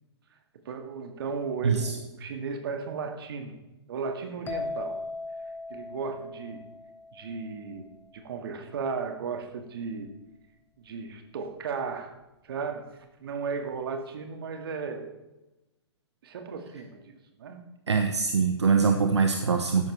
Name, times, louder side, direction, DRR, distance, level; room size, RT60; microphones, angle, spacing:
voice 1, 0.7-3.6 3.9-5.0 5.7-6.6 7.1-10.1 10.8-12.2 12.4-15.2 16.2-17.6, right 5 dB, 55° right, 5 dB, 1.9 m, -35 dB
sound 1, 4.5-8.1, left 3 dB, 15° left, 0.9 m, -38 dB
voice 2, 17.9-19.9, right 5 dB, 75° right, 6 dB, 1.0 m, -23 dB
13.0 x 11.0 x 3.3 m, 0.99 s
figure-of-eight pair, 115°, 14 cm